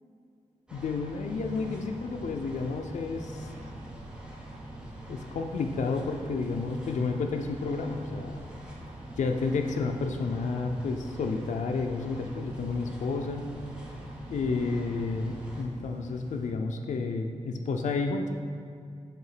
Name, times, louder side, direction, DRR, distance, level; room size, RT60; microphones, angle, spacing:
voice 1, 0.7-3.5 5.1-8.4 9.2-13.5 14.3-18.3, left 4 dB, 75° left, 3 dB, 0.4 m, -31 dB
sound 1, 0.7-15.6, right 1 dB, 5° right, 0.7 m, -46 dB
sound 2, 1.3-16.5, right 1 dB, 90° right, 0.8 m, -47 dB
7.5 x 2.8 x 4.8 m, 2.4 s
wide cardioid pair, 155°, 13 cm